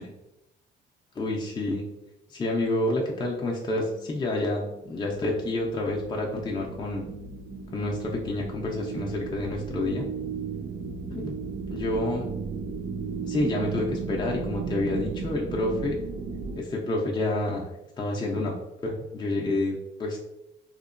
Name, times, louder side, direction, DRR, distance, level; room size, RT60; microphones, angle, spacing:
voice 1, 1.2-1.8 2.3-7.1 7.7-10.1 11.1-11.3 11.7-12.3 13.2-16.0 16.5-17.7 18.0-18.6 18.8-20.2, left 2 dB, 20° left, -2 dB, 0.4 m, -28 dB
sound 1, 3.8-16.6, right 5 dB, 45° right, 0.4 m, -35 dB
2.8 x 2.1 x 2.4 m, 0.93 s
cardioid pair, 90°, 20 cm